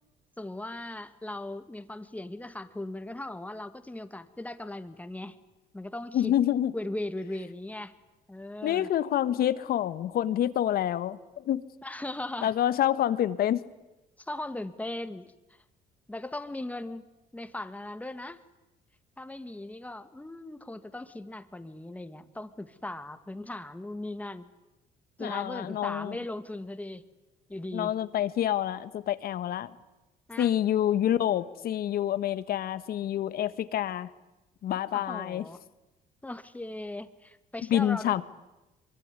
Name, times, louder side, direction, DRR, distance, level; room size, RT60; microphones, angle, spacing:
voice 1, 0.4-5.4 5.7-6.3 6.7-7.9 8.3-8.9 11.8-12.5 14.2-15.3 16.1-17.1 17.3-18.4 19.2-24.5 25.2-27.0 27.5-27.9 30.3-30.5 34.9-35.6 36.2-38.2, left 1 dB, 10° left, 11 dB, 1.8 m, -38 dB
voice 2, 6.1-6.7 8.6-11.6 12.4-13.6 25.2-26.2 27.7-29.7 30.4-34.1 34.6-35.4 37.7-38.2, left 11 dB, 60° left, 15 dB, 1.5 m, -27 dB
24.5 x 23.5 x 9.9 m, 1.0 s
cardioid pair, 110°, 17 cm